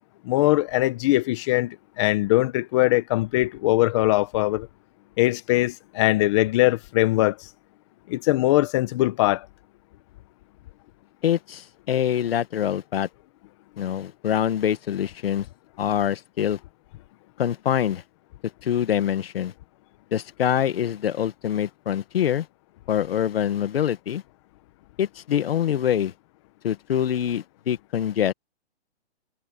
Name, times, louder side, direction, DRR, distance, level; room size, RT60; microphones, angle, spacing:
voice 1, 0.2-4.7 5.2-7.5 8.1-9.5, left 18 dB, 25° left, 1.0 m, -21 dB
voice 2, 11.2-13.1 13.8-15.5 15.8-16.6 17.4-18.0 18.6-19.5 20.1-22.5 22.9-24.2 25.0-26.1 26.6-28.3, left 10 dB, 60° left, 1.8 m, -25 dB
hypercardioid pair, 160°, 33 cm